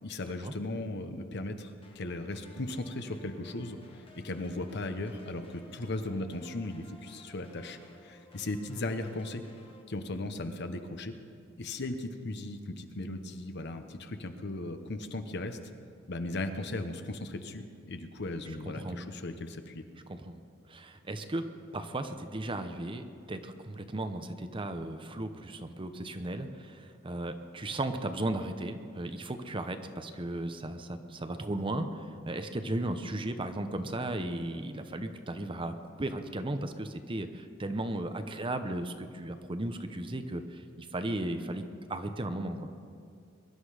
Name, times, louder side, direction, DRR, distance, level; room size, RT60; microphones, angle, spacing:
voice 1, 0.0-9.4 9.9-11.1 11.6-15.6 16.1-19.8, left 2 dB, 60° left, 8 dB, 1.0 m, -37 dB
sound 1, 1.8-9.8, left 2 dB, 30° left, 1.7 m, -56 dB
voice 2, 18.6-19.0 20.1-20.4 20.7-21.4 21.7-31.9 32.3-41.6 41.9-42.7, right 1 dB, 25° right, 8 dB, 0.8 m, -35 dB
22.5 x 11.5 x 5.0 m, 2.3 s
head